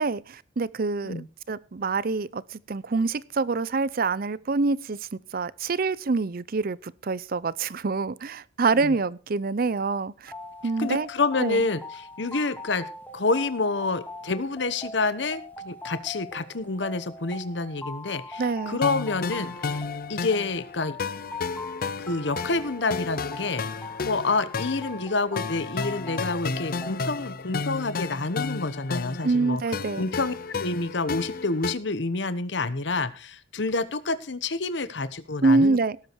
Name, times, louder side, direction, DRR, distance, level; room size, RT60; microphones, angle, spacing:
voice 1, 0.0-10.3 10.6-11.1 11.4-11.6 18.4-18.8 29.2-30.0 35.4-36.0, right 3 dB, 50° right, 21 dB, 0.6 m, -26 dB
sound 1, 10.3-26.9, left 3 dB, 10° left, 2.3 m, -41 dB
voice 2, 10.8-12.9 13.1-19.8 20.1-21.0 22.0-23.6 24.0-29.6 30.0-35.8, left 3 dB, 70° left, 14 dB, 1.1 m, -28 dB
sound 2, 18.8-31.7, left 4 dB, 50° left, 0.6 m, -33 dB
17.5 x 8.3 x 4.6 m, 0.38 s
head